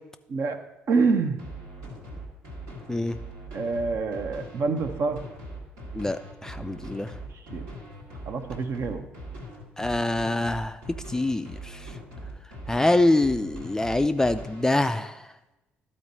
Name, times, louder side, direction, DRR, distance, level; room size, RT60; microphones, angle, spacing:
voice 1, 0.9-1.4 3.5-5.2 7.5-7.6 8.3-9.1, right 4 dB, 45° right, 8 dB, 0.7 m, -26 dB
sound 1, 1.4-14.6, right 1 dB, 70° right, 1.5 m, -41 dB
voice 2, 5.9-7.1 9.8-10.8 11.1-11.8 12.7-15.1, left 2 dB, 10° left, 9 dB, 0.3 m, -25 dB
12.0 x 4.3 x 4.0 m, 1.0 s
figure-of-eight pair, 45°, 6 cm